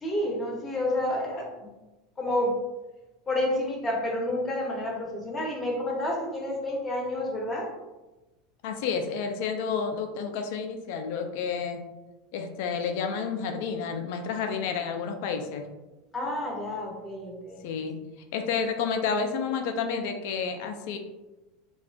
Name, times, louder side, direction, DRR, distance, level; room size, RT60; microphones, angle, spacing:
voice 1, 0.0-1.7 2.2-2.5 3.3-7.7 16.1-17.6, left 1 dB, 25° left, -1 dB, 0.7 m, -29 dB
voice 2, 8.6-11.8 12.3-15.7 17.6-18.0 18.3-21.0, left 6 dB, 60° left, 5 dB, 0.3 m, -30 dB
2.4 x 2.1 x 2.3 m, 1.1 s
hypercardioid pair, 80°, 0 cm